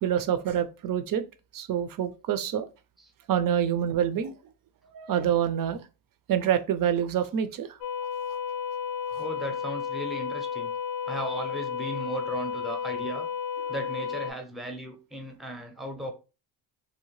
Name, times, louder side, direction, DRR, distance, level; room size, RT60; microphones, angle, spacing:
voice 1, 0.0-1.2 1.5-2.7 3.3-4.3 4.9-5.8 6.3-7.7 9.1-9.2, right 9 dB, 45° right, 0.5 m, -26 dB
sound 1, 7.8-14.3, left 7 dB, 50° left, 0.5 m, -32 dB
voice 2, 9.2-10.7 11.1-13.3 13.7-16.1, right 1 dB, ahead, 0.6 m, -36 dB
2.8 x 2.1 x 3.0 m
cardioid pair, 75°, 49 cm